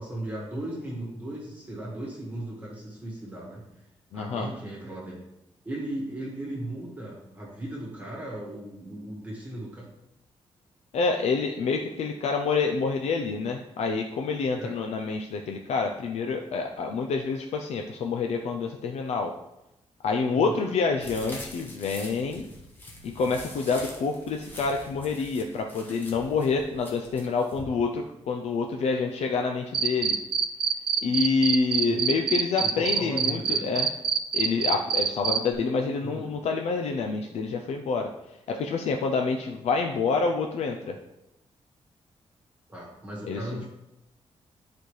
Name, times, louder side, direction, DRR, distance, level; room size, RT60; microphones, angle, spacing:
voice 1, 0.0-3.6 4.1-5.2 5.7-9.9 14.6-14.8 20.3-20.6 31.9-32.0 32.6-33.7 36.0-36.4 42.7-43.7, right 1 dB, 15° right, -4 dB, 1.7 m, -37 dB
voice 2, 4.1-4.5 10.9-19.3 20.0-22.5 23.0-30.2 31.0-33.9 34.3-41.0 43.2-43.6, left 4 dB, 80° left, 3 dB, 0.5 m, -27 dB
sound 1, 21.0-27.6, left 1 dB, 20° left, 1.1 m, -44 dB
Cricket, 29.7-35.4, right 7 dB, 50° right, 0.5 m, -24 dB
10.5 x 4.3 x 3.2 m, 0.90 s
wide cardioid pair, 180°, 11 cm